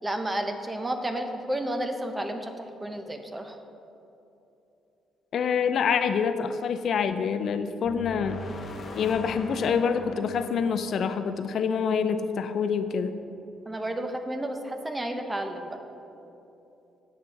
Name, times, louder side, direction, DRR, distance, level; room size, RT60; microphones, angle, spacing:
voice 1, 0.0-3.6 13.7-15.8, right 1 dB, 15° right, 6 dB, 0.8 m, -32 dB
voice 2, 5.3-8.4 9.0-13.2, left 6 dB, 65° left, 9 dB, 0.5 m, -26 dB
sound 1, 7.8-11.9, left 1 dB, 45° left, 1.0 m, -41 dB
8.4 x 6.6 x 5.8 m, 2.9 s
cardioid pair, 90°, 0 cm